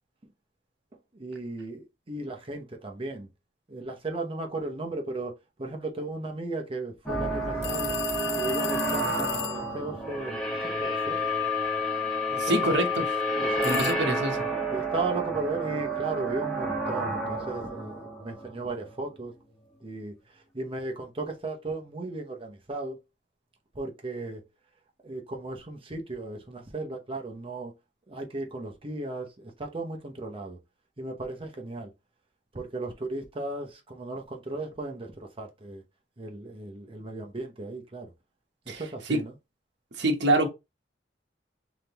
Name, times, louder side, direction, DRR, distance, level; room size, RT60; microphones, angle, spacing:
voice 1, 1.1-3.3 3.7-5.3 5.6-7.9 8.4-11.2 12.3-12.4 13.4-13.9 14.7-19.3 19.8-23.0 23.7-24.4 25.0-27.7 28.1-30.6 31.0-31.9 32.5-35.8 36.2-38.1 38.7-39.3, right 2 dB, 30° right, 0.8 m, -36 dB
sound 1, 7.0-19.2, equal, 5° left, 1.2 m, -30 dB
sound 2, 7.6-9.7 13.6-13.9, left 12 dB, 60° left, 0.3 m, -35 dB
voice 2, 12.4-13.1 13.6-14.4 38.7-38.8 39.1-39.2 40.0-40.5, right 1 dB, 65° right, 1.0 m, -25 dB
3.6 x 3.4 x 2.9 m
head